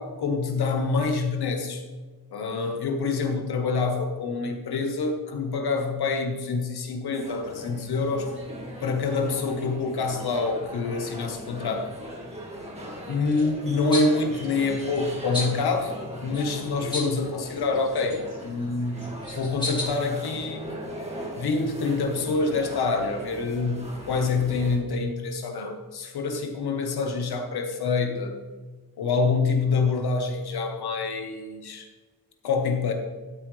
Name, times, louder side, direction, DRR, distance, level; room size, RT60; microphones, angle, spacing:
voice 1, 0.0-1.8 2.3-8.3 8.8-11.9 13.1-15.9 16.2-19.1 19.3-20.6 21.4-28.4 29.0-31.9 32.4-32.9, left 4 dB, 85° left, 4 dB, 1.5 m, -26 dB
sound 1, 7.1-24.8, equal, 15° right, 2.1 m, -40 dB
sound 2, 13.3-13.5 13.9-14.1 14.4-15.0 15.3-15.6 16.3-17.2 17.6-18.4 19.0-19.8, left 2 dB, 10° left, 2.8 m, -33 dB
12.5 x 9.0 x 3.4 m, 1.4 s
wide cardioid pair, 130°, 37 cm